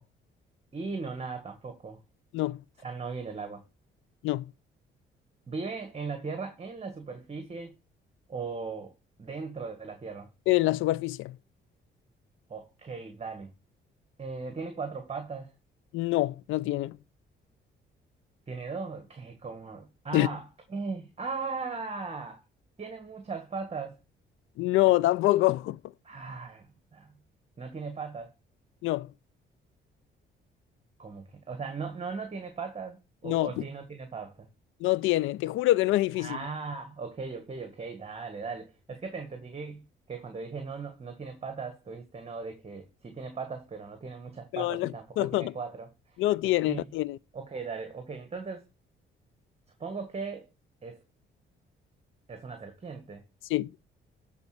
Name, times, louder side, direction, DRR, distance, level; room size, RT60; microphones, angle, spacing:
voice 1, 0.7-2.0 2.8-3.6 5.5-7.7 8.3-8.9 9.2-10.3 12.5-13.5 14.2-15.5 18.5-22.4 22.8-24.0 26.0-27.1 27.6-28.3 31.0-34.5 36.2-46.2 46.4-46.9 47.3-48.6 49.8-50.5 50.8-51.0 52.3-53.2, right 4 dB, 30° right, 1.7 m, -38 dB
voice 2, 10.5-11.4 15.9-17.0 20.1-20.3 24.6-25.8 28.8-29.1 33.2-33.6 34.8-36.4 44.5-45.5 46.2-47.2 53.5-53.8, left 17 dB, 90° left, 0.4 m, -26 dB
12.0 x 4.3 x 6.6 m
cardioid pair, 90°, 20 cm